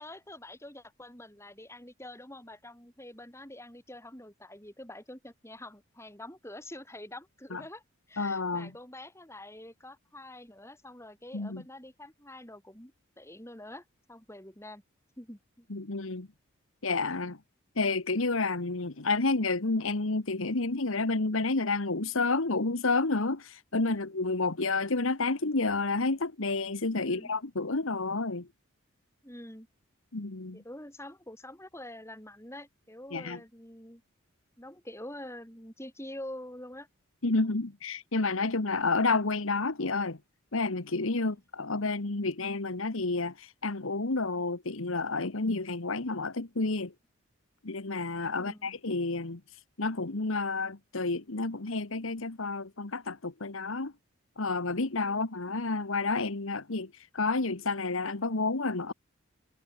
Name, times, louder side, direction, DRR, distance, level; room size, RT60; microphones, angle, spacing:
voice 1, 0.0-14.8 15.2-15.7 24.0-24.1 27.0-27.3 29.2-29.7 30.5-34.0 34.6-36.9 41.2-41.4 48.4-48.7 55.0-55.2, left 1 dB, 10° left, 6.8 m, -46 dB
voice 2, 8.2-8.7 11.3-11.6 15.7-16.3 16.8-17.4 17.8-28.5 30.1-30.6 33.1-33.4 37.2-40.2 40.5-46.9 47.6-49.4 49.8-53.9 54.4-58.9, left 3 dB, 75° left, 1.4 m, -30 dB
head